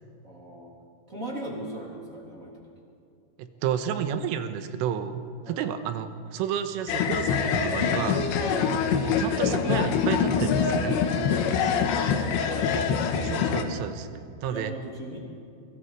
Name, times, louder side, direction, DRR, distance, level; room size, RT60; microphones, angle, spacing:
voice 1, 0.2-0.7 1.1-2.6 5.4-5.6 8.4-9.0 11.7-12.8 14.5-15.2, right 1 dB, 20° right, -2 dB, 2.5 m, -38 dB
voice 2, 3.4-5.2 5.5-8.3 9.0-11.0 13.2-14.1 14.4-14.7, right 8 dB, 80° right, 9 dB, 3.5 m, -31 dB
sound 1, 6.9-13.6, left 6 dB, 70° left, 3.2 m, -25 dB
25.5 x 22.5 x 4.7 m, 2.6 s
omnidirectional pair, 6.0 m